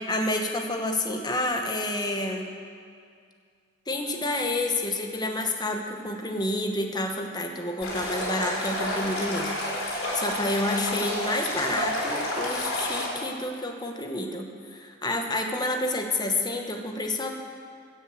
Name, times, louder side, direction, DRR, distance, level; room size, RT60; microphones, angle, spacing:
voice 1, 0.0-2.5 3.9-9.5 9.8-17.4, left 1 dB, 20° left, 4 dB, 1.0 m, -29 dB
Stream, 7.8-13.1, left 1 dB, 75° left, 3.7 m, -30 dB
16.0 x 6.4 x 7.5 m, 2.2 s
head